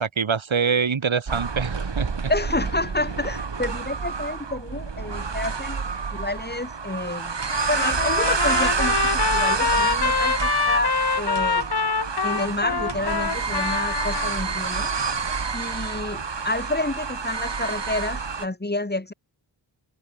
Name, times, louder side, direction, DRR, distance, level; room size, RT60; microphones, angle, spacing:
voice 1, 0.0-2.3, right 6 dB, 85° right, 5.7 m, -25 dB
sound 1, 1.3-18.5, right 5 dB, 65° right, 4.4 m, -28 dB
voice 2, 2.3-5.8 6.1-7.4 7.7-11.7 12.2-19.1, left 2 dB, 20° left, 3.5 m, -29 dB
Trumpet, 7.5-14.3, left 4 dB, 55° left, 3.5 m, -25 dB
wide cardioid pair, 60°, 46 cm